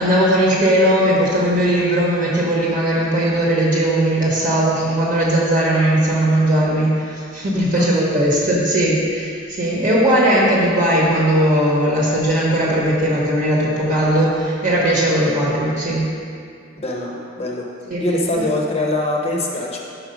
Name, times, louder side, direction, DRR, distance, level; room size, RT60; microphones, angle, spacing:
voice 1, 0.0-16.1 17.9-18.0, right 1 dB, 40° right, -6 dB, 1.0 m, -18 dB
voice 2, 16.8-17.1 17.4-17.6 18.0-19.8, left 1 dB, 30° left, -1 dB, 0.8 m, -22 dB
5.6 x 4.7 x 5.1 m, 2.3 s
head